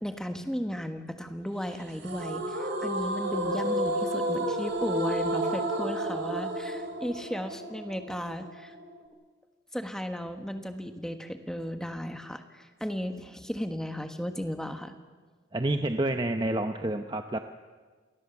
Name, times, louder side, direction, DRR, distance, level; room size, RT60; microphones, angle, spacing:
voice 1, 0.0-8.8 9.7-14.9, equal, 5° left, 6 dB, 1.4 m, -35 dB
sound 1, 2.0-9.1, right 1 dB, 65° right, 3.9 m, -31 dB
voice 2, 15.5-17.4, right 1 dB, 25° right, 6 dB, 0.8 m, -28 dB
27.5 x 19.0 x 7.2 m, 1.5 s
head